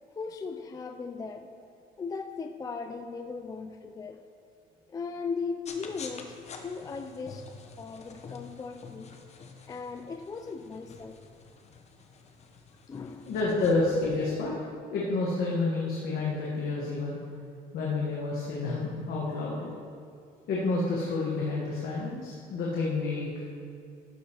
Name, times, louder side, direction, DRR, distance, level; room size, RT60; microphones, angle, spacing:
voice 1, 0.1-1.5 2.0-4.2 4.9-7.5 7.8-9.1 9.7-11.2 12.9-13.3 13.6-13.7, left 5 dB, 20° left, 7 dB, 0.3 m, -38 dB
sound 1, 5.6-14.2, left 5 dB, 40° left, 0.8 m, -48 dB
voice 2, 13.3-14.5 14.9-17.2 17.7-19.7 20.5-23.4, left 3 dB, 70° left, -4 dB, 1.3 m, -29 dB
12.0 x 6.4 x 2.9 m, 2.4 s
cardioid pair, 110°, 17 cm